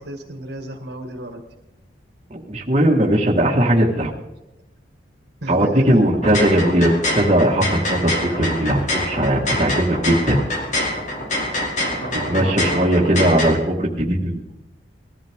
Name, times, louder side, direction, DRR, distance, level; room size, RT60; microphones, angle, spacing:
voice 1, 0.0-1.4 5.4-6.0 11.8-13.3, right 1 dB, 55° right, 4 dB, 1.8 m, -33 dB
voice 2, 2.3-4.1 5.5-10.4 12.1-14.4, right 1 dB, 30° right, -3 dB, 1.8 m, -18 dB
sound 1, 6.1-13.5, left 1 dB, 40° left, 2.8 m, -25 dB
20.5 x 14.0 x 3.7 m, 0.94 s
head